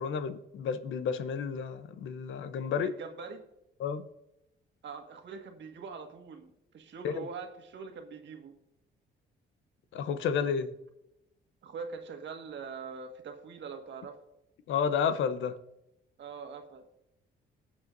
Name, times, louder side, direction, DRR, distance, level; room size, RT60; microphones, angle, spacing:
voice 1, 0.0-2.9 3.8-4.0 7.0-7.2 9.9-10.7 14.7-15.6, left 6 dB, 75° left, 11 dB, 0.9 m, -31 dB
voice 2, 2.8-3.4 4.8-8.5 11.6-14.2 16.2-16.8, right 5 dB, 65° right, 5 dB, 1.8 m, -43 dB
18.5 x 7.8 x 2.7 m, 0.85 s
cardioid pair, 90°, 20 cm